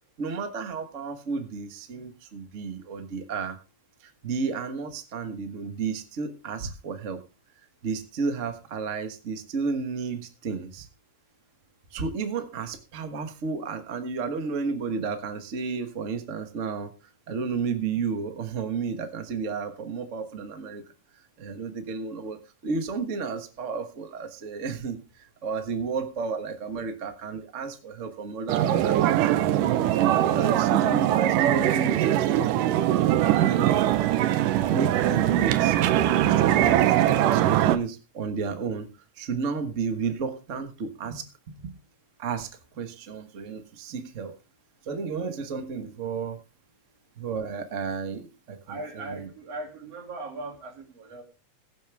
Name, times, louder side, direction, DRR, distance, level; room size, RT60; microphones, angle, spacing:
voice 1, 0.2-3.6 4.0-7.2 7.8-10.9 11.9-16.9 17.3-20.8 21.4-29.8 30.1-33.0 33.4-33.8 34.7-38.9 39.2-41.7 42.2-44.4 44.9-46.4 47.2-48.8 49.1-49.3, right 5 dB, 70° right, 0.7 m, -32 dB
sound 1, 28.5-37.8, right 13 dB, 90° right, 2.4 m, -22 dB
voice 2, 48.7-51.2, right 2 dB, 50° right, 3.3 m, -38 dB
21.5 x 7.2 x 3.4 m
omnidirectional pair, 3.7 m